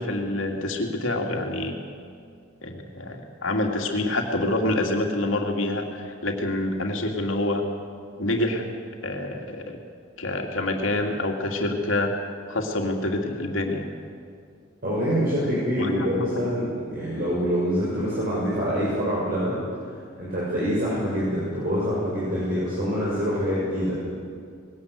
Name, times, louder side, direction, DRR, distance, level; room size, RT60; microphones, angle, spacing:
voice 1, 0.0-1.7 2.6-7.6 8.2-8.6 9.0-9.8 10.2-12.1 12.5-13.9 15.8-16.1, left 2 dB, 90° left, 2 dB, 2.6 m, -26 dB
voice 2, 14.8-19.6 20.2-24.0, equal, 50° right, -8 dB, 6.3 m, -25 dB
20.5 x 18.0 x 8.2 m, 2.2 s
head